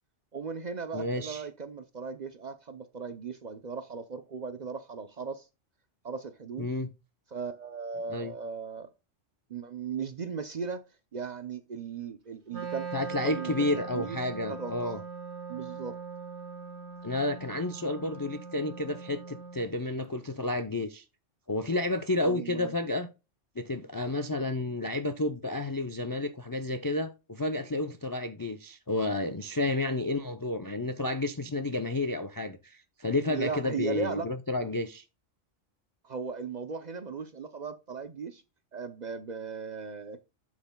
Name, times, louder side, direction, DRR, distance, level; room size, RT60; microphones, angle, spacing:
voice 1, 0.3-5.5 6.0-6.7 7.3-8.9 9.5-10.8 11.1-12.9 13.2-15.0 15.5-16.0 22.2-22.7 29.8-30.0 33.3-34.3 36.0-38.4 38.7-40.2, right 5 dB, 45° right, 0.6 m, -37 dB
voice 2, 0.9-1.4 6.6-6.9 8.1-8.3 12.9-15.0 17.0-21.0 21.5-23.1 23.6-35.0, left 2 dB, 30° left, 0.3 m, -31 dB
Wind instrument woodwind instrument, 12.5-19.7, right 5 dB, 65° right, 1.7 m, -41 dB
11.5 x 6.2 x 2.2 m
omnidirectional pair, 1.3 m